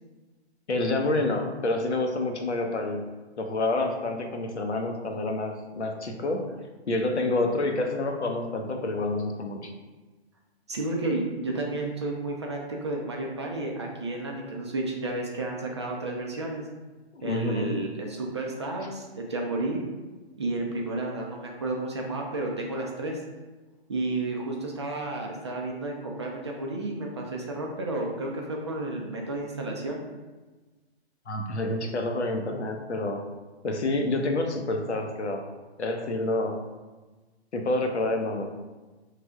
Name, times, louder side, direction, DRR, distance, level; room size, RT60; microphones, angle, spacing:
voice 1, 0.7-3.0 3.4-6.4 6.9-9.7 17.1-17.7 31.3-33.2 33.6-35.4 35.8-36.6 37.5-38.4, left 2 dB, 90° left, 4 dB, 0.8 m, -28 dB
voice 2, 10.7-16.6 17.2-19.8 20.4-23.2 23.9-30.0, right 2 dB, 25° right, 0 dB, 0.4 m, -32 dB
5.1 x 3.2 x 2.3 m, 1.2 s
hypercardioid pair, 145°, 33 cm